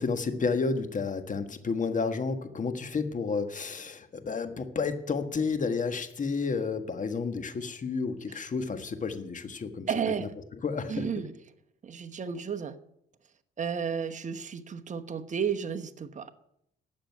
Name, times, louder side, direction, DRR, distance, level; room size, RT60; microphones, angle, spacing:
voice 1, 0.0-9.9 10.2-10.3 10.6-11.0, left 4 dB, 40° left, 9 dB, 1.5 m, -31 dB
voice 2, 9.9-10.3 10.9-11.3 11.8-12.7 13.6-16.3, right 7 dB, 40° right, 9 dB, 1.1 m, -32 dB
12.0 x 7.6 x 9.4 m, 0.78 s
cardioid pair, 90°, 20 cm